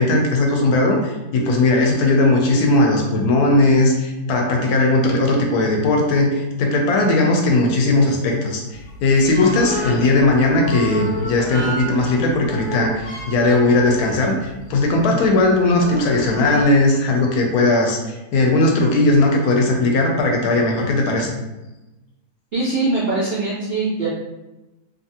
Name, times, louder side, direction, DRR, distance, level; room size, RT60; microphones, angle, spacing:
voice 1, 0.0-8.6 9.0-21.3, left 2 dB, 75° left, 1 dB, 1.0 m, -18 dB
sound 1, 8.7-16.6, left 1 dB, 90° left, 1.2 m, -32 dB
voice 2, 22.5-24.1, right 3 dB, 65° right, -6 dB, 0.5 m, -22 dB
2.7 x 2.5 x 2.7 m, 1.0 s
omnidirectional pair, 1.7 m